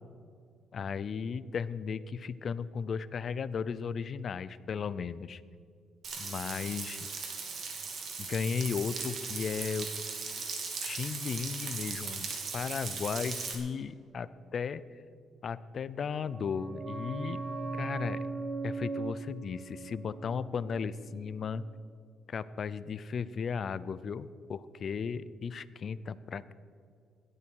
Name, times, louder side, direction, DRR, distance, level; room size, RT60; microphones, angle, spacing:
voice 1, 0.7-5.4 6.2-7.1 8.2-9.9 10.8-14.8 15.4-17.4 17.7-18.2 18.6-21.6 22.3-26.5, left 6 dB, 50° left, 17 dB, 0.6 m, -35 dB
Frying (food), 6.0-13.6, right 5 dB, 60° right, 3.0 m, -38 dB
sound 1, 16.1-21.5 21.7-21.8, right 3 dB, 35° right, 1.5 m, -39 dB
17.5 x 12.5 x 4.8 m, 2.3 s
cardioid pair, 90°, 0 cm